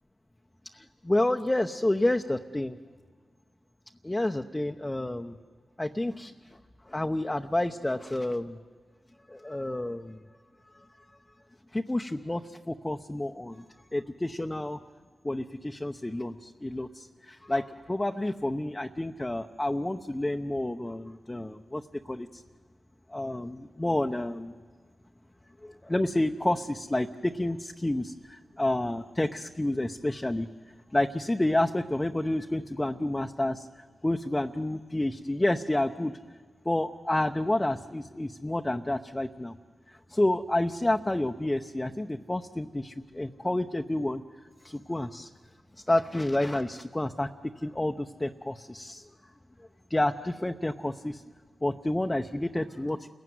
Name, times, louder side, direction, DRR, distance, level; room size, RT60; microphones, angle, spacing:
voice 1, 0.7-2.8 4.0-5.3 5.8-6.3 6.9-8.6 9.3-10.2 11.7-13.6 13.9-14.8 15.2-22.4 23.1-24.5 25.6-30.5 30.9-33.7 34.0-36.1 36.6-39.5 39.9-44.2 44.6-45.3 45.9-49.1 49.9-51.2 51.6-53.1, left 1 dB, 20° left, 5 dB, 0.8 m, -29 dB
28.0 x 16.0 x 9.5 m, 1.5 s
cardioid pair, 55°, 0 cm